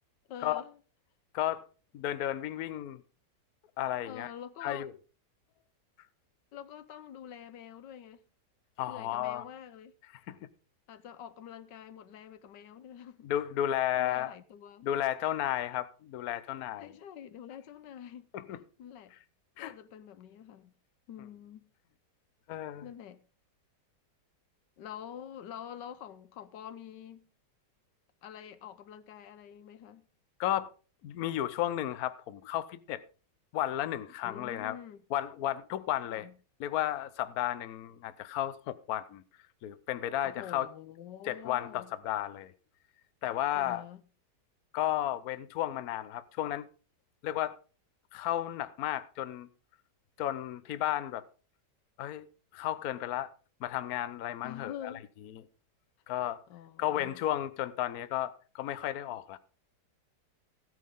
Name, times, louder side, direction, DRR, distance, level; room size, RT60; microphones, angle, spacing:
voice 1, 0.3-0.8 4.1-4.9 6.5-8.2 8.9-9.9 10.9-13.3 13.9-14.9 16.8-18.3 18.8-19.1 19.6-20.7 21.1-21.7 22.8-23.2 24.8-27.3 28.2-30.1 34.2-35.0 36.1-36.4 40.2-41.9 43.5-44.0 54.4-55.0 56.5-57.2, left 9 dB, 85° left, 1.5 m, -46 dB
voice 2, 1.9-3.0 3.8-4.3 4.6-4.9 8.8-9.4 10.3-10.4 13.2-14.3 14.8-16.9 18.3-18.6 19.6-19.7 22.5-22.9 30.4-30.7 31.0-33.0 33.5-34.8 35.1-36.3 36.6-39.2 39.6-40.7 41.3-42.5 43.2-43.8 44.7-46.7 47.2-47.6 48.1-49.5 50.2-51.2 52.0-52.3 52.5-53.3 53.6-54.9 56.1-56.4 56.8-59.4, left 12 dB, 65° left, 1.1 m, -33 dB
15.5 x 9.3 x 3.7 m
omnidirectional pair, 1.9 m